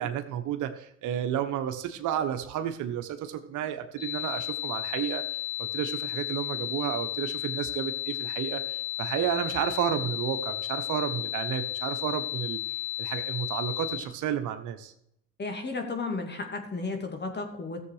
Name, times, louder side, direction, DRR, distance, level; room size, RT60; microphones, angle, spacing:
voice 1, 0.0-5.2 5.6-12.6 13.0-14.9, right 10 dB, 70° right, 8 dB, 1.2 m, -31 dB
sound 1, 4.0-14.0, left 14 dB, 85° left, 4.5 m, -33 dB
voice 2, 15.4-17.8, left 3 dB, 35° left, 4 dB, 2.6 m, -33 dB
14.0 x 7.4 x 4.9 m, 0.75 s
supercardioid pair, 75°, 31 cm